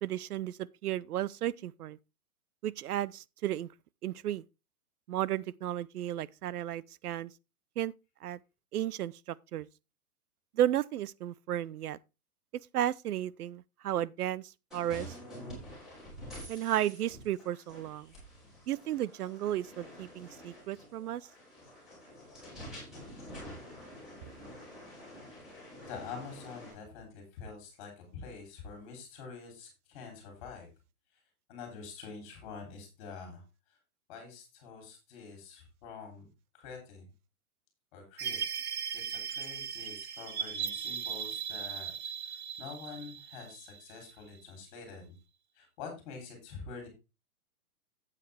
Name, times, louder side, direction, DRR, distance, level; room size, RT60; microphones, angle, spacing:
voice 1, 0.0-2.0 2.6-3.7 4.0-4.4 5.1-7.3 7.8-7.9 8.2-8.4 8.7-9.7 10.5-12.0 12.7-15.2 16.5-18.1 18.7-21.2, right 12 dB, 80° right, 0.6 m, -33 dB
sound 1, 14.7-26.7, equal, ahead, 3.4 m, -48 dB
voice 2, 25.9-30.7 31.5-33.4 34.1-36.3 36.5-37.0 37.9-38.6 38.9-41.9 42.2-45.2 45.5-46.9, left 5 dB, 20° left, 3.2 m, -46 dB
sound 2, 38.2-44.4, right 8 dB, 45° right, 0.7 m, -38 dB
9.3 x 8.4 x 3.3 m
hypercardioid pair, 180°, 45 cm